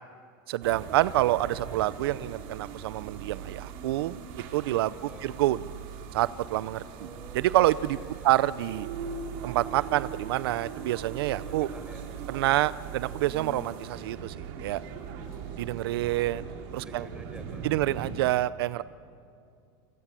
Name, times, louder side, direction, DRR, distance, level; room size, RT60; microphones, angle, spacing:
voice 1, 0.5-4.2 4.5-4.9 5.2-5.6 6.1-6.8 7.3-8.0 8.2-8.9 9.4-11.7 12.3-14.8 15.6-17.0 17.6-18.8, right 15 dB, 75° right, 17 dB, 0.6 m, -27 dB
sound 1, 0.6-18.2, right 6 dB, 60° right, 3.5 m, -40 dB
voice 2, 4.9-5.3 6.9-7.5 8.0-8.4 11.3-12.1 16.8-17.9, right 2 dB, 10° right, 3 dB, 5.7 m, -49 dB
28.5 x 21.5 x 7.6 m, 2.5 s
supercardioid pair, 135°, 13 cm